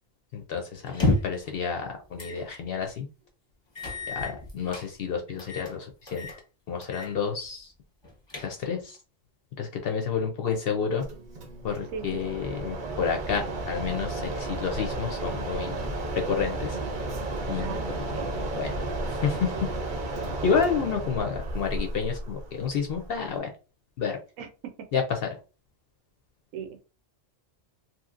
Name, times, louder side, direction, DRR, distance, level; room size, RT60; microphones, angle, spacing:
voice 1, 0.3-3.1 4.1-6.3 6.7-7.7 8.4-9.0 9.6-11.0 11.6-15.8 16.2-16.8 17.5-18.7 19.1-19.5 20.4-23.5 24.0-24.2 24.9-25.3, left 6 dB, 60° left, 4 dB, 0.6 m, -30 dB
sound 1, 0.9-1.5 2.2-2.4 2.8-2.9 3.8-4.9 5.4-5.7 6.1-6.4 6.8-7.1 7.4-7.5 8.0-8.8, left 2 dB, 25° left, 0.7 m, -30 dB
Mechanisms, 11.0-23.4, right 2 dB, 45° right, 0.7 m, -33 dB
voice 2, 11.9-12.4 17.6-18.3 24.4-24.5 26.5-26.8, right 6 dB, 85° right, 5 dB, 1.0 m, -39 dB
2.9 x 2.7 x 2.4 m, 0.33 s
omnidirectional pair, 1.3 m